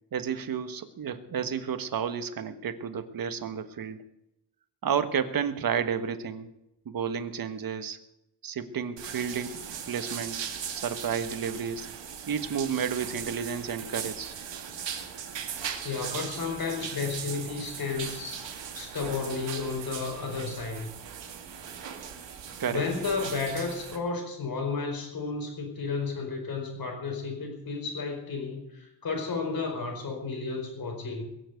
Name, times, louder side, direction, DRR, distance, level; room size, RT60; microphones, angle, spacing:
voice 1, 0.1-4.0 4.8-6.5 6.8-8.0 8.4-10.4 10.8-11.9 12.3-14.3 22.6-22.8, right 7 dB, 50° right, 9 dB, 1.4 m, -31 dB
sound 1, 9.0-24.0, right 8 dB, 70° right, 2.5 m, -39 dB
voice 2, 15.8-18.4 18.7-20.9 22.7-31.2, left 4 dB, 50° left, 3 dB, 4.7 m, -32 dB
22.0 x 7.5 x 8.0 m, 0.86 s
wide cardioid pair, 140°, 45 cm